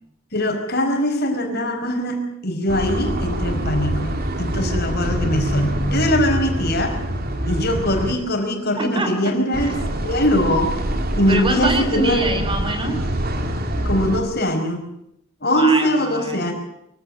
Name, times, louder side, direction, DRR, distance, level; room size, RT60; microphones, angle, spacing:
voice 1, 0.3-7.0 7.4-9.8 10.0-10.8 11.2-12.3 13.8-14.9 15.4-16.5, equal, 50° left, 4 dB, 5.0 m, -21 dB
sound 1, 2.7-8.1 9.5-14.2, right 1 dB, 45° right, 2.9 m, -25 dB
voice 2, 8.8-9.1 11.3-13.0 15.5-16.5, right 2 dB, 25° right, 7 dB, 3.2 m, -25 dB
24.0 x 16.5 x 8.8 m, 0.79 s
head